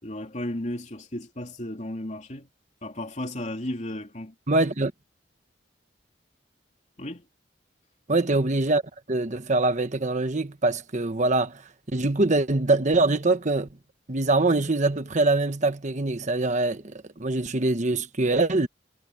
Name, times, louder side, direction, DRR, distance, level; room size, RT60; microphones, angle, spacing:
voice 1, 0.0-2.5 2.8-4.3 7.0-7.2, left 1 dB, 40° left, 3.0 m, -34 dB
voice 2, 4.5-4.9 8.1-8.8 9.1-11.6 11.9-13.7 14.1-18.7, right 2 dB, 40° right, 1.2 m, -23 dB
head